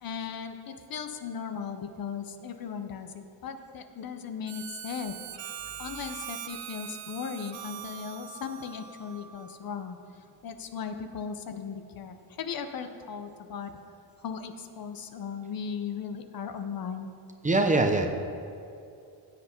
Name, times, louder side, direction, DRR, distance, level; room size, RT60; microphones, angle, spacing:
voice 1, 0.0-5.1 5.8-10.0 10.4-13.7 14.2-17.1, left 6 dB, 55° left, 8 dB, 0.8 m, -37 dB
Harmonica, 4.5-9.6, right 9 dB, 85° right, 0.9 m, -42 dB
voice 2, 17.4-18.1, right 2 dB, 15° right, 5 dB, 0.8 m, -22 dB
15.5 x 7.9 x 4.4 m, 2.5 s
cardioid pair, 130°, 43 cm